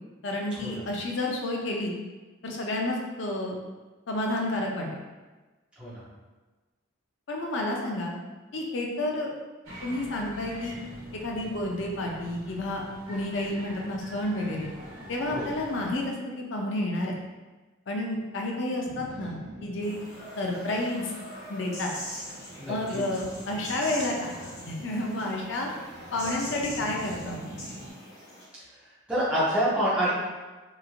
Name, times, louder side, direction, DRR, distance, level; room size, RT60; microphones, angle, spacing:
voice 1, 0.2-1.9 2.4-3.6 4.1-5.0 7.3-8.1 8.5-9.3 9.8-10.8 11.2-14.7 15.1-17.1 17.9-20.0 20.4-21.1 21.5-21.9 22.7-24.3 24.7-25.7 26.1-27.5, left 1 dB, 60° left, 0 dB, 0.5 m, -30 dB
sound 1, 9.6-16.0, equal, 85° right, 0.9 m, -44 dB
Boat Water vehicle, 18.8-27.9, right 1 dB, 55° right, 0.6 m, -46 dB
sound 2, 19.8-28.4, left 1 dB, 80° left, 1.3 m, -42 dB
voice 2, 22.6-23.0 29.1-30.1, equal, 5° right, -12 dB, 0.6 m, -27 dB
3.0 x 2.5 x 2.4 m, 1.2 s
head